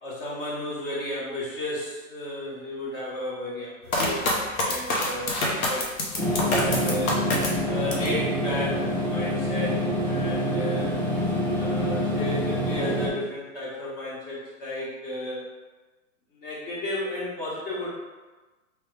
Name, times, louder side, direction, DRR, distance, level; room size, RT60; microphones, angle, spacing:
voice 1, 0.0-3.7 4.0-4.3 4.6-5.9 6.5-7.2 7.7-10.9 11.6-15.4 16.3-17.9, left 1 dB, 40° left, -6 dB, 1.4 m, -33 dB
sound 1, 3.9-8.2 8.6-9.3, left 1 dB, 75° left, 1.0 m, -27 dB
sound 2, 6.1-13.1, equal, 5° left, 0.6 m, -26 dB
3.2 x 3.0 x 3.3 m, 1.2 s
hypercardioid pair, 145°, 42 cm